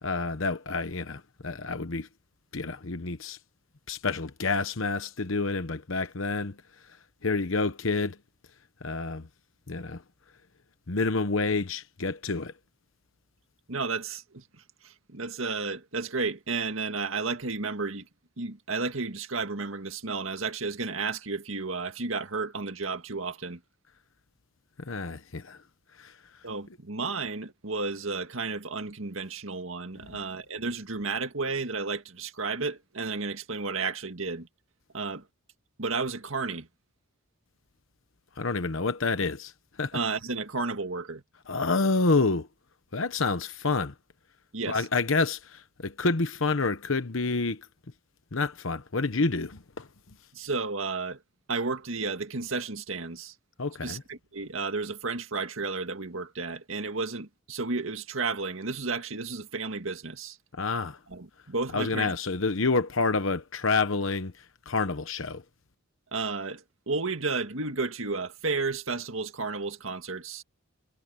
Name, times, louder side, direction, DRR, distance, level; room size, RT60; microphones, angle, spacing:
voice 1, 0.0-2.1 2.5-3.4 3.9-6.6 7.2-8.2 8.8-9.3 9.7-10.0 10.9-12.5 24.8-25.6 26.0-26.2 30.0-30.2 38.4-39.5 39.8-40.0 41.5-42.5 42.9-43.9 44.7-47.7 48.3-49.9 53.6-54.0 60.5-61.0 61.7-65.4, left 3 dB, 65° left, 1.0 m, -28 dB
voice 2, 13.7-18.1 18.4-23.6 26.4-34.5 34.9-35.2 35.8-36.7 39.9-41.2 44.5-44.9 50.3-51.2 51.5-53.3 53.8-60.4 61.1-62.1 66.1-70.4, right 4 dB, 65° right, 2.0 m, -32 dB
head